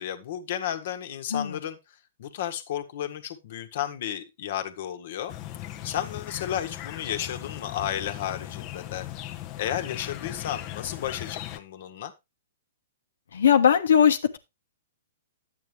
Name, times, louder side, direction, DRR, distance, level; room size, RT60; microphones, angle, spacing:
voice 1, 0.0-1.8 2.2-5.3 5.8-9.1 9.6-12.1, left 10 dB, 55° left, 8 dB, 1.6 m, -33 dB
sound 1, 5.3-11.6, left 13 dB, 35° left, 1.0 m, -38 dB
voice 2, 13.3-14.4, left 8 dB, 75° left, 8 dB, 1.3 m, -20 dB
11.0 x 8.5 x 3.4 m, 0.24 s
hypercardioid pair, 125°, 0 cm